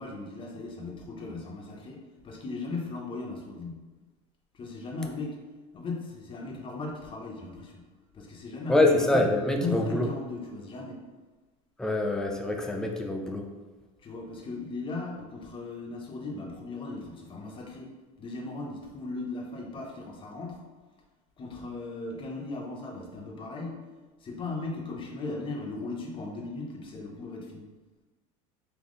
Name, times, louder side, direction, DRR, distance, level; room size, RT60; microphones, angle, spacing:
voice 1, 0.0-3.8 4.5-5.4 5.7-7.8 8.1-9.1 9.3-11.0 14.0-17.9 18.2-20.6 21.4-23.8 24.2-27.7, left 3 dB, 30° left, 0 dB, 0.8 m, -37 dB
voice 2, 8.7-10.1 11.8-13.5, left 2 dB, 5° left, 2 dB, 0.4 m, -25 dB
3.6 x 2.9 x 3.7 m, 1.3 s
supercardioid pair, 125°, 18 cm